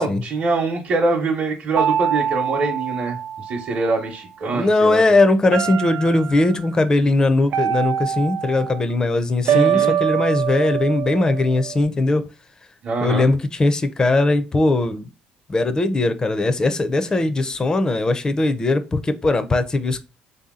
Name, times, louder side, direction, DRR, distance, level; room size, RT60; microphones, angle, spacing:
voice 1, 0.0-5.0 9.4-10.0 12.8-13.3, right 3 dB, 45° right, 0.9 m, -24 dB
sound 1, 1.7-4.1 5.5-6.5 7.5-8.8 9.5-11.8, right 9 dB, 70° right, 0.4 m, -24 dB
voice 2, 4.5-12.2 13.0-15.1 15.5-20.0, left 2 dB, 20° left, 0.5 m, -19 dB
3.4 x 2.8 x 3.6 m
cardioid pair, 105°, 3 cm